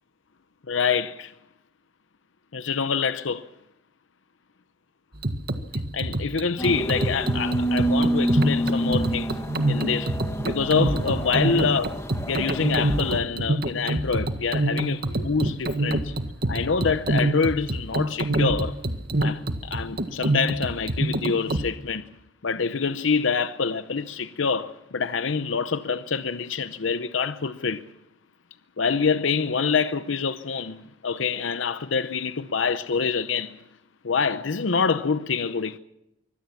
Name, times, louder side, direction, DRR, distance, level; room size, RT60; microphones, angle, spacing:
voice 1, 0.7-1.3 2.5-3.5 5.9-9.4 9.7-10.2 10.4-12.0 12.3-16.2 16.5-18.8 19.2-22.1 22.4-27.9 28.8-33.6 34.0-35.8, left 5 dB, 90° left, 0.7 m, -26 dB
sound 1, 5.2-21.7, right 1 dB, 55° right, 1.7 m, -26 dB
sound 2, 6.6-13.2, right 1 dB, 15° left, 1.6 m, -28 dB
24.5 x 17.0 x 7.2 m
head